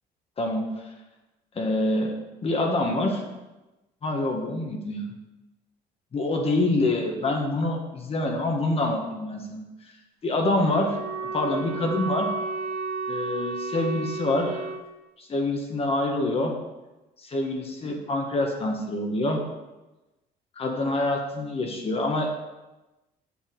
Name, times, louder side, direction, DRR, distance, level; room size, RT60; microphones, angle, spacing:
voice 1, 1.5-2.2 2.4-3.2 4.0-5.1 6.1-9.6 10.2-11.0 11.3-12.3 13.1-14.7 15.2-16.5 17.2-19.4 20.6-22.4, left 2 dB, 35° left, 2 dB, 1.3 m, -26 dB
Wind instrument woodwind instrument, 10.5-14.9, right 3 dB, 65° right, 1.1 m, -32 dB
7.2 x 6.8 x 3.9 m, 1.1 s
cardioid pair, 110°, 17 cm